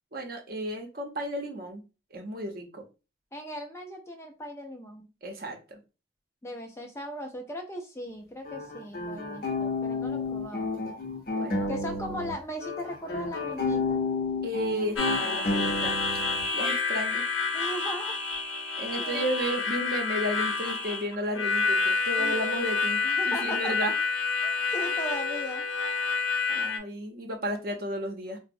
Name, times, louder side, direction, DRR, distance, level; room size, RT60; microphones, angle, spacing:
voice 1, 0.1-1.8 2.1-2.8 5.2-5.8 11.3-12.0 14.4-16.2 16.5-17.2 18.8-23.0 23.2-23.9 26.5-28.4, equal, 50° right, 2 dB, 0.7 m, -33 dB
voice 2, 3.3-5.1 6.4-10.7 11.7-14.0 17.5-18.2 18.9-19.3 22.2-22.4 23.0-23.7 24.4-25.6, equal, 15° left, 3 dB, 0.4 m, -38 dB
sound 1, 8.4-12.3 12.6-16.4, left 3 dB, 50° left, 0.7 m, -31 dB
Harmonica, 15.0-26.8, left 4 dB, 90° left, 0.6 m, -28 dB
4.0 x 2.0 x 2.6 m, 0.31 s
head